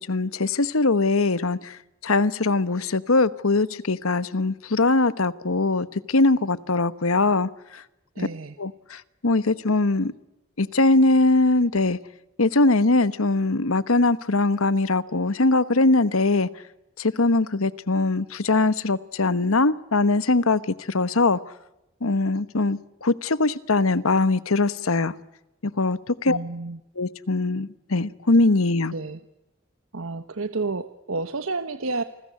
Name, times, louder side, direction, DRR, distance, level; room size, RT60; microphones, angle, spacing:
voice 1, 0.1-1.8 2.0-7.8 8.6-10.1 10.6-12.0 12.4-16.5 17.0-20.6 20.9-21.4 22.0-25.1 25.8-26.4 27.0-28.9, left 3 dB, 85° left, 1.2 m, -21 dB
voice 2, 8.2-8.6 26.3-26.8 28.9-29.2 29.9-32.0, right 3 dB, 80° right, 1.2 m, -30 dB
29.0 x 20.5 x 9.6 m
head